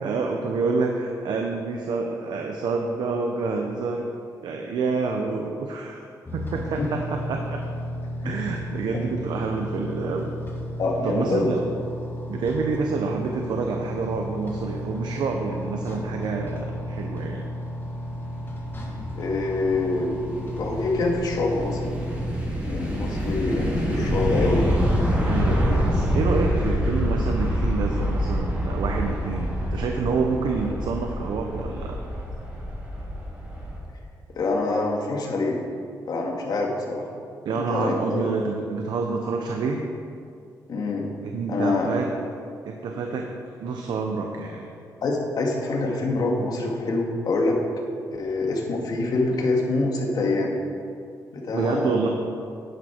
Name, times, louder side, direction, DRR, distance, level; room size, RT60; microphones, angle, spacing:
voice 1, 0.0-4.1 4.4-6.0 6.3-7.6 8.2-10.3 11.0-11.6 12.3-17.5 25.2-32.0 37.4-39.8 41.3-42.1 42.6-43.3 43.6-44.7 51.5-52.1, right 4 dB, 80° right, 2 dB, 0.9 m, -28 dB
sound 1, 6.3-22.3, equal, 30° left, 2.3 m, -33 dB
voice 2, 10.8-11.7 19.2-22.0 22.6-24.8 34.4-35.6 36.1-37.1 37.5-38.3 40.7-41.1 41.5-41.9 45.0-47.6 48.1-50.6 51.3-52.0, left 2 dB, 65° left, -1 dB, 2.1 m, -25 dB
sound 2, 18.3-33.8, equal, 20° right, 3.2 m, -26 dB
10.5 x 10.5 x 4.6 m, 2.4 s
cardioid pair, 100°, 7 cm